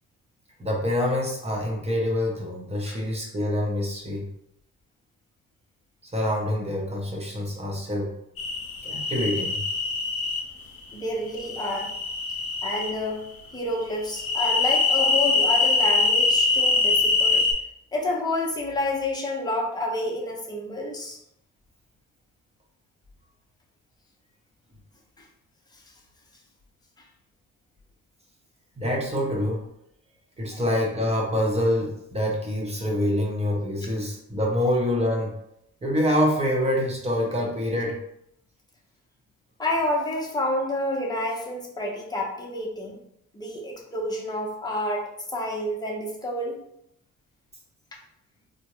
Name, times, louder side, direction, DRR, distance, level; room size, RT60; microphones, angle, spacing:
voice 1, 0.6-4.3 6.1-8.1 8.8-9.6 28.8-29.6 30.4-35.3 35.8-38.0, left 1 dB, 20° right, -1 dB, 0.9 m, -26 dB
sound 1, 8.4-10.4 11.4-12.9 14.2-17.5, left 4 dB, 50° left, 0.8 m, -23 dB
voice 2, 10.9-11.9 12.6-13.2 13.5-17.4 17.9-21.2 25.2-25.3 25.7-25.8 30.5-30.6 39.6-43.0 43.3-46.6, left 1 dB, 15° left, -2 dB, 0.8 m, -29 dB
3.5 x 2.1 x 3.0 m, 0.77 s
cardioid pair, 90°, 30 cm